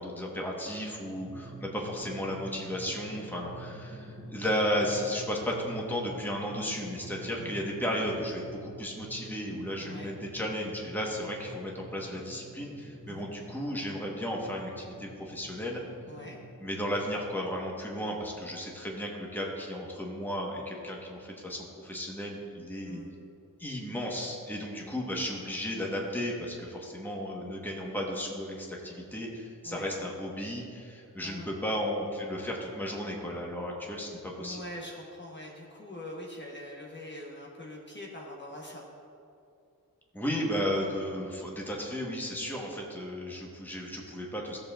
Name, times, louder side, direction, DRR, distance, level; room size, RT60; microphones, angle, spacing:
voice 1, 0.0-15.8 16.6-23.0 23.6-34.6 40.1-44.6, equal, 5° left, -2 dB, 1.4 m, -34 dB
Drum, 1.2-17.4, right 1 dB, 30° right, 2.1 m, -47 dB
voice 2, 9.8-10.1 13.1-13.3 16.1-16.4 22.8-23.1 29.6-29.9 31.2-31.5 34.2-38.8, left 1 dB, 30° left, -3 dB, 1.3 m, -43 dB
14.5 x 6.8 x 2.6 m, 2.6 s
wide cardioid pair, 60°, 35 cm